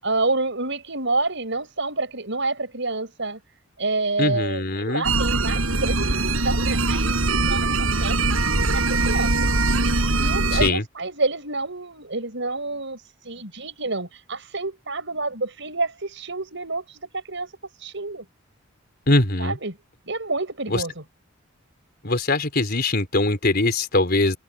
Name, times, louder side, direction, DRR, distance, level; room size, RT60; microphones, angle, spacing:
voice 1, 0.0-3.4 3.8-6.1 6.4-8.2 8.7-9.5 10.2-13.0 13.2-17.5 17.8-18.2 19.4-19.8 20.1-21.0, right 3 dB, 60° right, 8.0 m, -28 dB
voice 2, 4.2-5.1 10.5-10.8 19.1-19.6 20.7-20.8 22.0-24.4, left 2 dB, 50° left, 4.3 m, -22 dB
sound 1, 5.0-10.7, right 2 dB, 85° right, 5.9 m, -22 dB
head